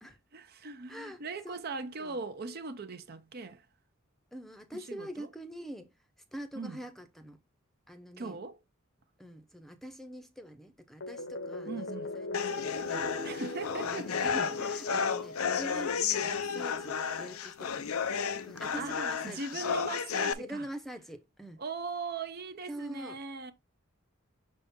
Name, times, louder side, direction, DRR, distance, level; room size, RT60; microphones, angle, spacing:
voice 1, 0.3-3.6 4.7-5.3 6.6-6.8 8.2-8.6 11.7-12.1 13.2-14.1 18.8-19.0 19.2-20.7 21.6-23.5, right 4 dB, 45° right, 0.6 m, -39 dB
voice 2, 0.9-1.6 2.0-2.2 4.3-5.9 6.3-7.4 7.9-8.4 9.2-13.3 13.8-17.9 18.4-19.6 20.4-21.6 22.7-23.2, right 1 dB, ahead, 0.7 m, -44 dB
sound 1, 11.0-16.2, left 2 dB, 55° left, 0.9 m, -40 dB
sound 2, 12.3-20.3, left 6 dB, 85° left, 0.6 m, -32 dB
6.4 x 4.2 x 3.6 m
head